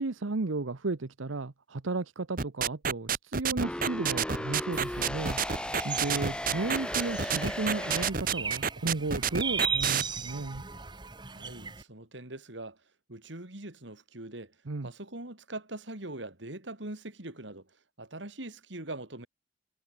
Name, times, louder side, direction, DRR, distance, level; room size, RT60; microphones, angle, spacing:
voice 1, 0.0-10.6 14.7-14.9, right 3 dB, 90° right, 0.9 m, -34 dB
sound 1, 2.4-10.0, right 7 dB, 45° right, 1.3 m, -28 dB
sound 2, 3.6-8.1, left 1 dB, 5° left, 0.4 m, -36 dB
sound 3, 4.7-11.8, right 5 dB, 25° right, 1.3 m, -37 dB
voice 2, 11.2-12.8 13.1-14.6 14.8-19.3, right 2 dB, 70° right, 3.0 m, -42 dB
head